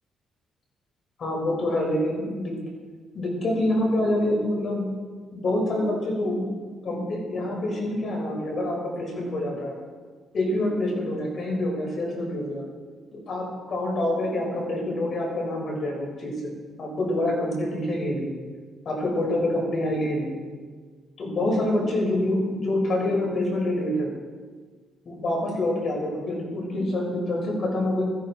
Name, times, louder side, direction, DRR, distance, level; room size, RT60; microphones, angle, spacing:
voice 1, 1.2-2.5 3.1-4.9 5.3-9.8 10.3-12.6 13.1-16.3 16.8-18.3 18.9-20.4 21.2-24.1 25.1-28.0, left 1 dB, 50° left, 0 dB, 5.9 m, -26 dB
16.5 x 14.5 x 4.6 m, 1.5 s
cardioid pair, 90°, 0 cm